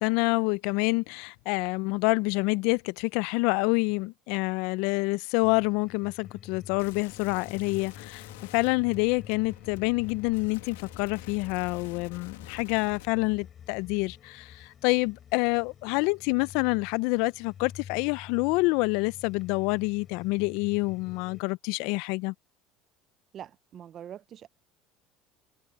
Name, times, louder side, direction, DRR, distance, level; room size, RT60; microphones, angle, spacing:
voice 1, 0.0-8.3 8.5-22.3, left 26 dB, 75° left, 0.4 m, -27 dB
sound 1, 5.4-21.4, left 9 dB, 40° left, 4.6 m, -48 dB
sound 2, 6.8-13.1, left 17 dB, 90° left, 1.6 m, -49 dB
voice 2, 23.3-24.5, right 10 dB, 45° right, 0.5 m, -44 dB
supercardioid pair, 90°, 0 cm